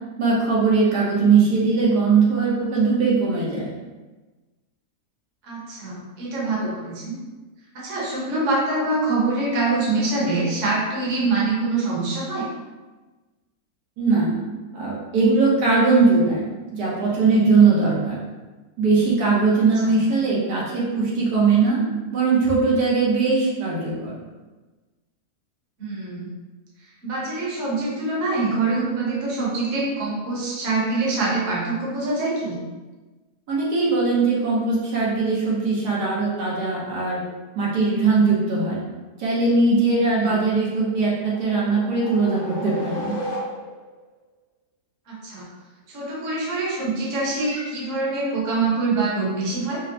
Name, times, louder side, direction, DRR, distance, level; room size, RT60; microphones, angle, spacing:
voice 1, 0.2-3.7 14.0-14.4 14.7-16.4 16.7-18.2 18.8-21.8 22.1-24.2 33.5-37.2 37.6-38.8 39.2-43.1, right 4 dB, 75° right, -5 dB, 1.3 m, -20 dB
voice 2, 5.4-7.2 7.7-12.5 19.8-19.9 25.8-26.3 27.0-32.6 40.2-40.4 45.1-45.5 45.9-49.8, right 3 dB, 55° right, -6 dB, 1.2 m, -25 dB
sound 1, 40.7-44.0, equal, 80° left, 1.4 m, -34 dB
5.4 x 2.1 x 2.6 m, 1.2 s
omnidirectional pair, 1.7 m